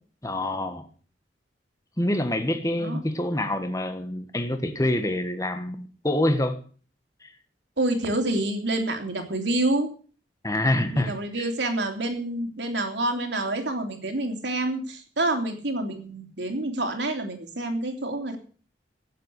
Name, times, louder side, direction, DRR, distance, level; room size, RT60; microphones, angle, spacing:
voice 1, 0.2-0.9 2.0-6.6 7.2-7.3 10.4-11.5, left 1 dB, 20° left, 1.3 m, -26 dB
voice 2, 7.8-9.9 10.9-18.4, right 2 dB, 80° right, 3.2 m, -27 dB
16.5 x 7.6 x 8.1 m
head